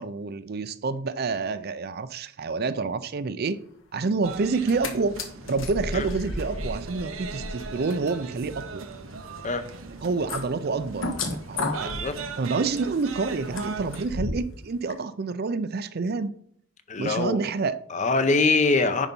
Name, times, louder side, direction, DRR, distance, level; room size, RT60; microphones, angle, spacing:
voice 1, 0.0-3.6 3.9-5.2 5.5-8.8 10.0-11.9 12.4-16.3 17.0-17.8, right 4 dB, 50° right, 13 dB, 0.5 m, -28 dB
sound 1, 4.2-14.1, right 5 dB, 90° right, 0.8 m, -39 dB
sound 2, 4.5-4.9 5.2-14.5 14.9-15.0, left 2 dB, 70° left, 1.3 m, -35 dB
voice 2, 11.8-12.2 16.9-17.4 17.9-19.1, left 3 dB, 35° left, 10 dB, 0.7 m, -23 dB
10.0 x 4.1 x 5.3 m, 0.65 s
head